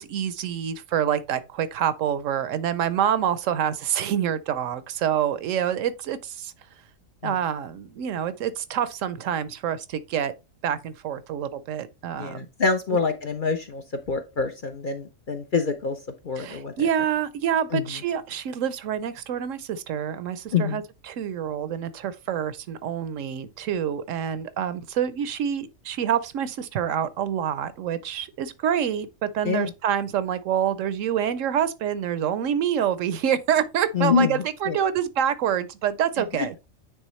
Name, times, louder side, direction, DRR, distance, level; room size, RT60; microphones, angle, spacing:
voice 1, 0.0-6.5 7.2-10.3 10.6-12.4 16.4-36.7, right 9 dB, 75° right, 0.9 m, -27 dB
voice 2, 12.2-16.0 16.2-16.9 17.7-18.0 20.5-20.8 29.4-29.7 33.9-34.8 36.4-36.5, left 5 dB, 50° left, 0.7 m, -26 dB
9.0 x 3.5 x 3.1 m
omnidirectional pair, 1.4 m